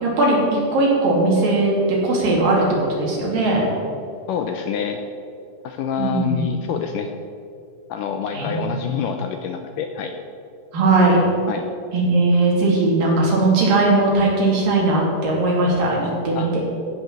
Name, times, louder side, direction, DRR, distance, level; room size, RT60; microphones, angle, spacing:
voice 1, 0.0-1.8 2.0-2.6 2.9-3.6 6.0-6.4 8.3-8.6 10.7-11.2 11.9-16.6, right 2 dB, 65° right, -3 dB, 4.5 m, -18 dB
voice 2, 4.3-5.0 5.6-7.1 7.9-10.1 11.5-11.7 16.4-16.5, left 7 dB, 75° left, 5 dB, 2.0 m, -26 dB
15.5 x 6.0 x 7.5 m, 2.4 s
omnidirectional pair, 4.3 m